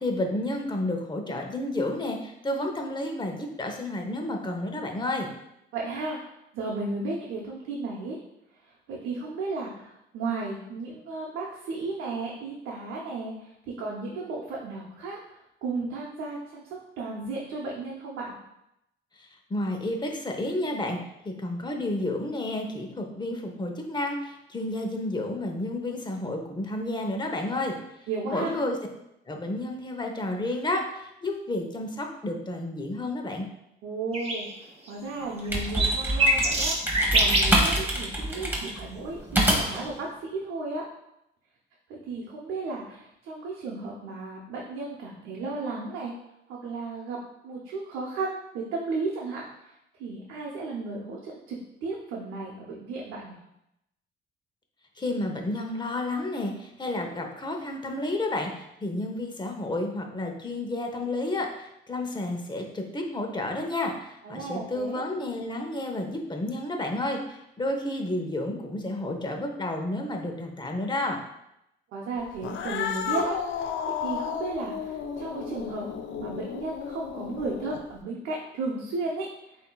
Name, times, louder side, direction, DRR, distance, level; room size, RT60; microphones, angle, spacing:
voice 1, 0.0-5.3 19.2-21.0 21.2-27.7 28.3-28.8 29.3-33.5 55.0-71.2, left 1 dB, 20° left, 3 dB, 0.9 m, -31 dB
voice 2, 5.7-6.2 6.5-8.2 8.9-18.4 28.1-28.6 33.8-34.5 34.9-36.8 37.1-40.9 41.9-46.1 46.5-49.7 50.0-53.4 64.2-65.0 71.9-75.9 76.2-79.3, right 3 dB, 90° right, -3 dB, 0.8 m, -34 dB
sound 1, 34.1-34.5 34.9-35.0 35.4-37.6 39.7-39.8, right 1 dB, 30° right, 1.0 m, -24 dB
sound 2, 35.2-39.9, right 1 dB, 10° right, 1.2 m, -26 dB
Cat, 72.4-78.0, left 7 dB, 70° left, 0.5 m, -33 dB
8.3 x 2.8 x 2.3 m, 0.82 s
cardioid pair, 90°, 20 cm